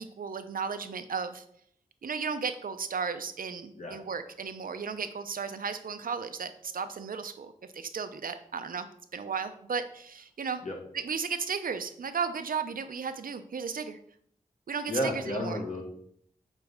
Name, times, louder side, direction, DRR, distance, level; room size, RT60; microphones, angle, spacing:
voice 1, 0.0-1.4 2.0-8.9 9.1-10.6 10.9-14.0 14.7-15.6, right 5 dB, 85° right, 10 dB, 0.6 m, -34 dB
voice 2, 14.9-15.8, equal, 65° left, 0 dB, 1.8 m, -31 dB
8.2 x 4.1 x 3.6 m, 0.66 s
wide cardioid pair, 85°, 14 cm